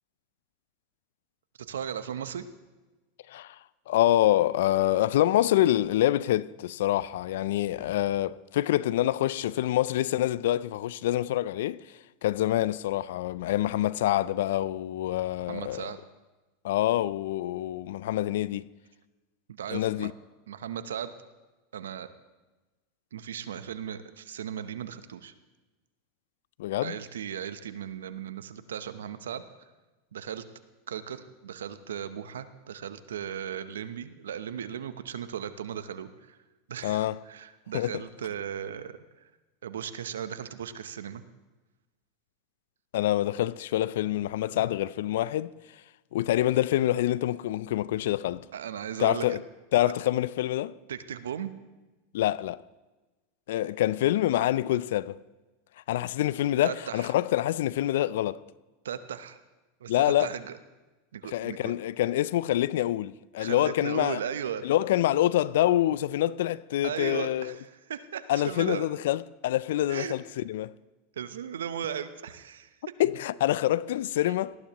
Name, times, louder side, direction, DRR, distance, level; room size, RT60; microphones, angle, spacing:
voice 1, 1.7-2.5 15.5-16.0 19.5-20.1 20.5-21.1 21.7-22.1 23.1-25.3 26.8-29.4 30.1-30.4 30.9-36.4 36.7-39.0 39.6-41.2 48.5-49.4 50.9-51.5 56.6-57.1 58.8-59.4 59.8-60.5 61.1-61.7 63.4-64.7 66.8-68.9 69.9-70.1 71.2-72.7, right 9 dB, 85° right, 0.8 m, -36 dB
voice 2, 3.9-11.8 12.2-15.9 16.6-18.7 19.7-20.1 26.6-27.0 36.8-37.2 37.7-38.0 42.9-45.5 46.1-48.5 49.0-49.4 49.7-50.7 52.1-52.6 53.5-55.2 55.9-58.4 59.9-60.4 61.3-64.2 64.6-67.6 68.3-70.7 73.0-74.6, left 13 dB, 75° left, 0.4 m, -26 dB
19.0 x 14.0 x 3.0 m
hypercardioid pair, 100°, 0 cm